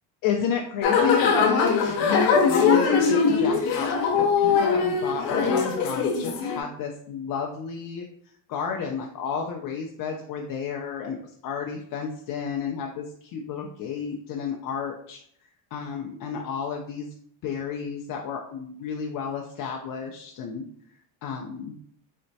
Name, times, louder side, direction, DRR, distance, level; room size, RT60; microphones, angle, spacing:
voice 1, 0.2-8.0 8.5-11.2 11.4-15.2 15.7-17.1 17.4-20.6 21.2-21.8, left 6 dB, 45° left, 1 dB, 0.5 m, -31 dB
sound 1, 0.8-6.6, left 5 dB, 85° left, 0.8 m, -21 dB
4.1 x 2.1 x 2.6 m, 0.65 s
supercardioid pair, 85°, 50 cm